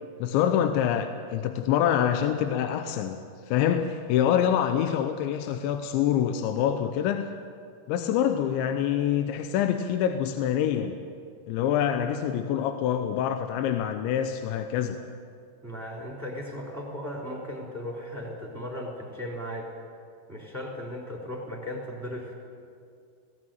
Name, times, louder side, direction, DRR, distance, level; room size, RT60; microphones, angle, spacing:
voice 1, 0.2-3.2 3.5-7.3 7.9-11.0 11.5-15.0, left 9 dB, 85° left, 7 dB, 3.1 m, -26 dB
voice 2, 15.6-19.7 20.3-22.3, left 1 dB, 5° right, -2 dB, 2.7 m, -36 dB
18.5 x 17.0 x 9.1 m, 2.3 s
omnidirectional pair, 5.2 m